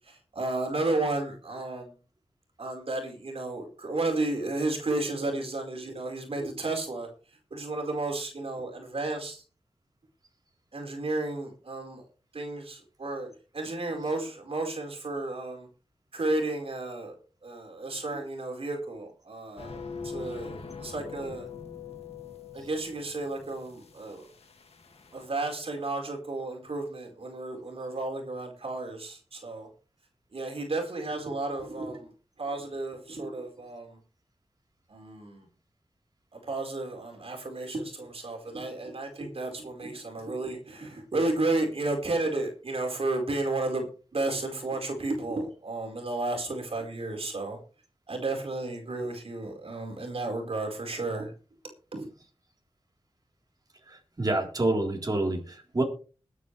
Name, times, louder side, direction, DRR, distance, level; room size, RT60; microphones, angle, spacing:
voice 1, 0.0-1.9 2.6-7.1 7.5-9.4 10.7-12.0 12.3-15.7 16.1-17.1 17.4-21.5 22.5-24.2 25.1-29.7 30.3-32.1 32.4-34.0 34.9-35.5 36.3-43.9 44.1-47.6 48.1-51.3 51.9-52.1, right 2 dB, 70° right, 2 dB, 4.6 m, -32 dB
sound 1, 19.6-25.3, left 5 dB, 90° left, 2.2 m, -43 dB
voice 2, 53.8-55.8, right 2 dB, 40° right, 0 dB, 3.8 m, -28 dB
22.0 x 9.4 x 3.3 m, 0.37 s
wide cardioid pair, 60°, 10 cm